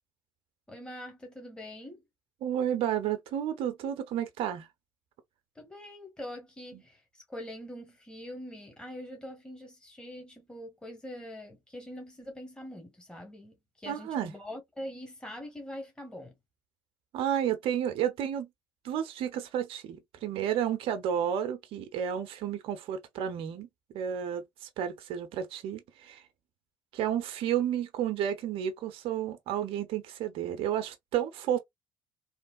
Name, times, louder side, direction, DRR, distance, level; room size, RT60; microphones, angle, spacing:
voice 1, 0.7-2.0 5.5-16.4, left 1 dB, 10° left, 1.2 m, -43 dB
voice 2, 2.4-4.7 6.7-6.8 13.9-14.3 17.1-18.5 18.8-26.2 26.9-31.6, right 9 dB, 60° right, 0.7 m, -31 dB
3.1 x 2.0 x 2.4 m
hypercardioid pair, 60°, 11 cm